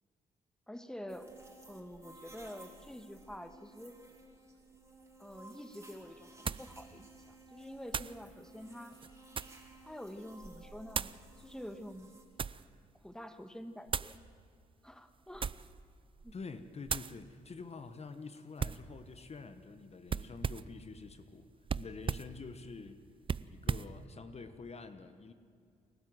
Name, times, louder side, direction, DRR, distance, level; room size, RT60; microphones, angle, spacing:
voice 1, 0.7-1.3 1.7-4.0 5.2-9.0 9.8-12.1 12.9-14.2 14.8-15.6 16.2-16.3, equal, 5° left, 9 dB, 1.5 m, -47 dB
sound 1, 1.1-12.2, right 2 dB, 15° right, 4.4 m, -56 dB
sound 2, 5.3-5.4 6.5-6.7 7.9-8.2 8.9-9.7 10.9-11.2 12.0-12.7 13.9-14.2 15.3-15.8 16.2-16.4 16.9-17.2 18.6-18.9 20.1-20.8 21.7-22.3 23.2-23.9, right 6 dB, 35° right, 0.5 m, -37 dB
voice 2, 16.3-21.5 21.8-23.0 23.5-25.3, left 4 dB, 45° left, 10 dB, 1.3 m, -47 dB
28.5 x 12.5 x 7.8 m, 2.4 s
cardioid pair, 65°, 15 cm